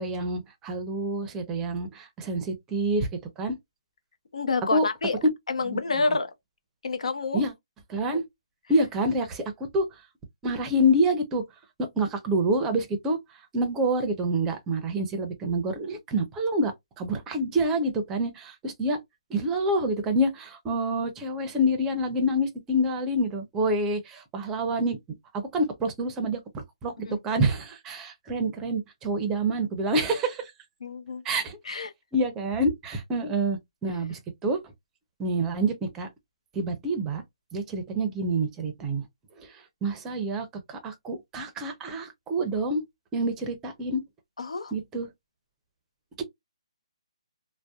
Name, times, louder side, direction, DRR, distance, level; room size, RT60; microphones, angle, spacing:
voice 1, 0.0-3.1 3.4-3.6 4.7-4.9 5.6-5.8 7.3-7.5 7.9-8.2 8.7-9.8 10.4-11.4 12.0-13.2 13.5-16.7 17.0-19.0 19.3-25.0 25.3-30.5 31.2-31.6 32.1-34.6 35.2-36.1 36.5-37.2 37.5-39.0 39.4-39.5 39.8-42.8 43.1-44.0 44.7-45.1, right 1 dB, 15° right, 0.5 m, -27 dB
voice 2, 4.3-5.2 5.5-6.3 6.8-7.4 27.1-27.2 30.8-31.2 31.6-31.9 44.4-44.7, left 3 dB, 80° left, 0.6 m, -28 dB
2.6 x 2.1 x 2.2 m
hypercardioid pair, 155°, 3 cm